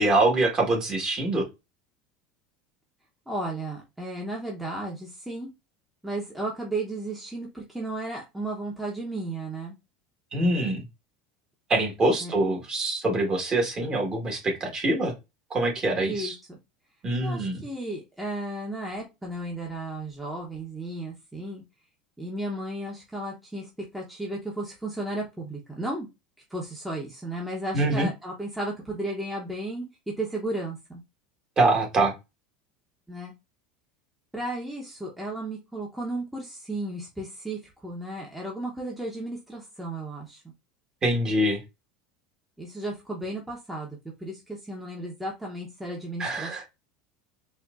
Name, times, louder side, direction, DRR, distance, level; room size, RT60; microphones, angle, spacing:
voice 1, 0.0-1.5 10.3-10.9 11.7-15.1 15.5-16.3 17.0-17.6 27.7-28.1 31.6-32.1 41.0-41.6 46.2-46.6, right 2 dB, 30° right, 0 dB, 1.5 m, -24 dB
voice 2, 3.3-5.5 6.0-9.8 12.2-12.3 16.1-16.6 17.2-21.6 22.2-26.1 26.5-31.0 33.1-33.3 34.3-40.4 42.6-46.6, right 1 dB, 5° right, -2 dB, 0.9 m, -34 dB
4.3 x 2.5 x 2.5 m, 0.23 s
supercardioid pair, 115°, 3 cm